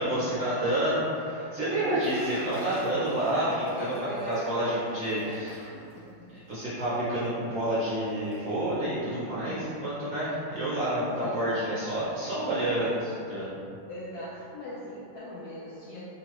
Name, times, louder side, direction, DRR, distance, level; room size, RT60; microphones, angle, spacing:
voice 1, 0.0-3.9 4.2-5.6 6.3-13.5, right 1 dB, 60° right, -11 dB, 0.9 m, -29 dB
Liquid, 1.9-7.3 7.7-7.8 8.1-8.4 8.7-8.9 9.5-9.7 11.2-11.3, left 1 dB, 50° left, 1.3 m, -45 dB
voice 2, 3.3-5.3 5.7-6.4 9.4-9.9 11.2-11.5 13.9-16.0, left 1 dB, 75° left, -8 dB, 0.9 m, -40 dB
3.0 x 2.8 x 2.9 m, 2.6 s
omnidirectional pair, 2.1 m